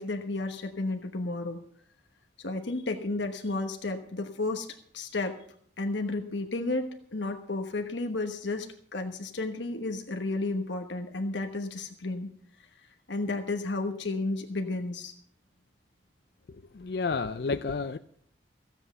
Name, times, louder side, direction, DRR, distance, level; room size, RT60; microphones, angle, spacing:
voice 1, 0.0-1.6 2.4-4.7 4.9-5.4 5.8-12.3 13.1-15.1, left 2 dB, 75° left, 5 dB, 1.2 m, -32 dB
voice 2, 16.8-18.0, left 4 dB, 55° left, 11 dB, 0.4 m, -30 dB
15.5 x 8.2 x 6.9 m, 0.65 s
head